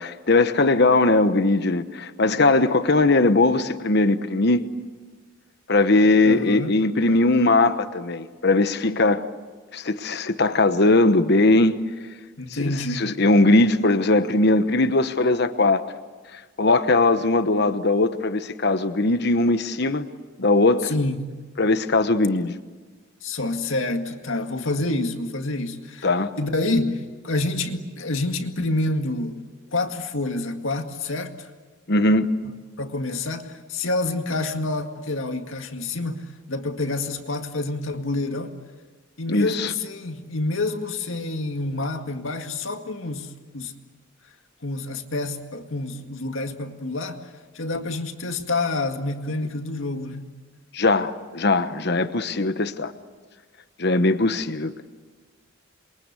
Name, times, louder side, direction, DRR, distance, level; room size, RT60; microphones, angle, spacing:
voice 1, 0.0-4.6 5.7-9.2 9.7-11.8 12.6-15.8 16.3-20.0 20.4-20.9 21.6-22.5 26.0-26.3 31.9-32.3 39.3-39.7 50.7-52.9 53.8-54.9, left 2 dB, 55° left, 1.1 m, -20 dB
voice 2, 6.2-6.7 12.4-13.1 20.8-21.3 23.2-26.1 26.4-31.5 32.8-38.5 39.2-43.7 44.6-47.2 47.5-50.3, left 2 dB, 75° left, 2.1 m, -28 dB
28.0 x 23.0 x 8.3 m
head